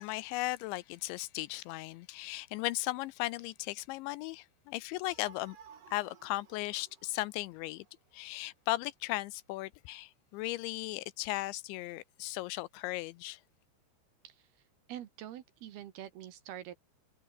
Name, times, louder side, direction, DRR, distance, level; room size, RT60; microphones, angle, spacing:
voice 1, 0.0-5.6 5.9-7.9 8.1-13.4, left 19 dB, 80° left, 2.8 m, -37 dB
sound 1, 5.1-8.5, right 8 dB, 50° right, 4.1 m, -58 dB
voice 2, 14.9-16.7, right 11 dB, 65° right, 3.0 m, -45 dB
omnidirectional pair, 5.5 m